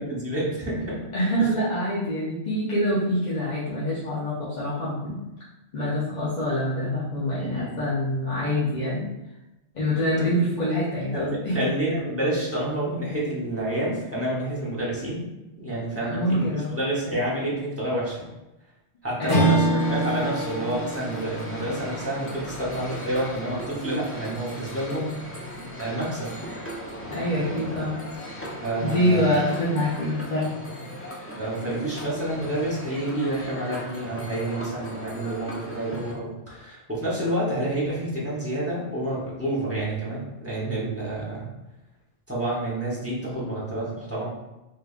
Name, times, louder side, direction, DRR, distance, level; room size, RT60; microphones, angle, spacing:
voice 1, 0.0-1.0 1.4-1.5 7.4-7.9 10.2-10.5 11.1-15.2 15.6-18.3 19.0-25.1 25.8-26.4 28.6-29.3 31.4-41.5 42.3-44.3, right 1 dB, 15° right, -6 dB, 0.9 m, -29 dB
voice 2, 1.1-5.2 5.7-9.0 9.7-11.7 16.0-16.7 19.2-19.6 27.1-28.0 28.8-30.5, equal, 45° left, -9 dB, 0.8 m, -25 dB
Strum, 19.3-23.9, right 2 dB, 80° left, 1.4 m, -27 dB
sound 1, 19.8-36.1, equal, 20° left, 0.3 m, -37 dB
3.3 x 3.2 x 2.4 m, 0.97 s
omnidirectional pair, 1.1 m